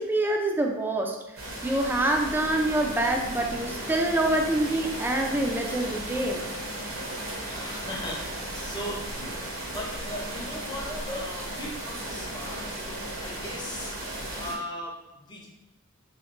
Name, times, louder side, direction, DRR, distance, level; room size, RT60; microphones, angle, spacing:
voice 1, 0.0-6.4 10.9-11.2, right 1 dB, 10° right, 2 dB, 0.3 m, -26 dB
sound 1, 1.4-14.6, right 1 dB, 80° right, 1.0 m, -35 dB
voice 2, 7.4-14.0 14.3-15.5, equal, 20° left, -2 dB, 0.7 m, -39 dB
3.2 x 3.1 x 3.1 m, 0.98 s
head